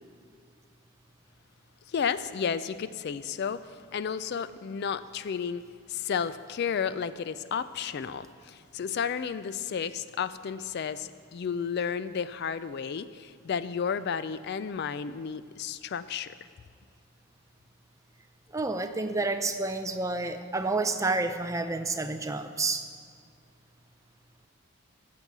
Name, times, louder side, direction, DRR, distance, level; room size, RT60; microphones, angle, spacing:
voice 1, 1.9-3.6 3.9-5.6 5.9-16.3, left 7 dB, 50° left, 14 dB, 0.3 m, -32 dB
voice 2, 18.5-22.9, right 3 dB, 15° right, 8 dB, 0.5 m, -29 dB
14.5 x 7.6 x 6.0 m, 2.1 s
head